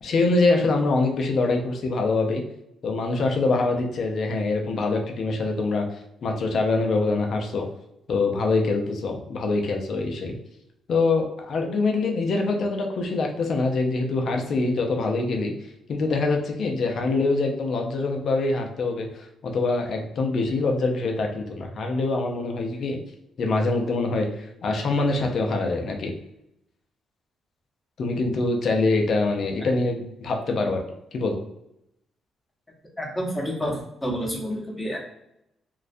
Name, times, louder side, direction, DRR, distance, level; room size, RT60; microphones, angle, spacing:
voice 1, 0.0-2.4 2.8-5.9 6.2-7.7 8.1-10.4 10.9-15.5 15.9-23.0 23.4-26.1 28.0-30.8 31.1-31.4, left 3 dB, 60° left, 3 dB, 0.4 m, -24 dB
voice 2, 33.0-35.0, equal, 15° left, -2 dB, 0.8 m, -29 dB
2.3 x 2.1 x 2.5 m, 0.81 s
cardioid pair, 85°, 0 cm